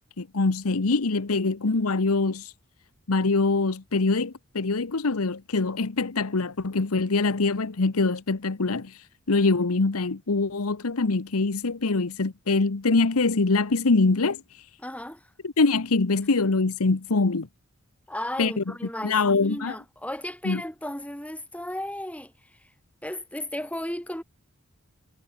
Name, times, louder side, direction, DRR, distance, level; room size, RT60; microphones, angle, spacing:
voice 1, 0.2-2.5 3.1-8.9 9.3-14.4 15.4-17.5 18.4-18.6 19.0-19.7 20.4-20.6, left 3 dB, 90° left, 1.0 m, -24 dB
voice 2, 14.8-15.3 18.1-22.7 23.0-24.2, left 1 dB, 5° left, 7.0 m, -35 dB
head